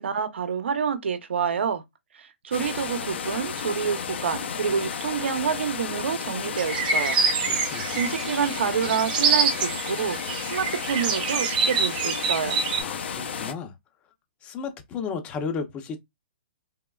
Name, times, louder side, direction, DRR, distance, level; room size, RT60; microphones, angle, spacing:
voice 1, 0.0-1.8 2.1-7.2 7.6-12.6, right 7 dB, 80° right, 0.8 m, -28 dB
sound 1, 2.5-13.5, left 7 dB, 70° left, 0.6 m, -33 dB
sound 2, 6.6-12.8, right 5 dB, 45° right, 1.0 m, -26 dB
voice 2, 7.6-8.0 12.7-13.7 14.4-16.0, left 5 dB, 20° left, 0.6 m, -34 dB
3.5 x 3.1 x 2.3 m
hypercardioid pair, 155°, 6 cm